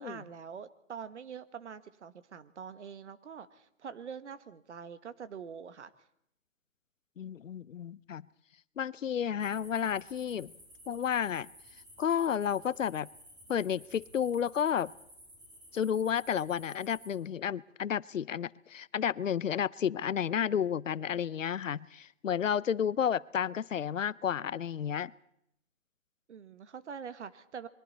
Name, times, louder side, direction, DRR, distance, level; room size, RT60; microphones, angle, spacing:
voice 1, 0.0-5.9 26.3-27.7, right 7 dB, 65° right, 13 dB, 1.5 m, -44 dB
voice 2, 7.2-8.3 8.8-10.5 10.9-11.5 12.0-13.1 13.5-14.9 15.7-25.1, left 8 dB, 80° left, 21 dB, 0.7 m, -31 dB
sound 1, 9.4-17.1, equal, 10° right, 5.3 m, -55 dB
27.5 x 22.5 x 4.2 m, 0.75 s
hypercardioid pair, 140°, 38 cm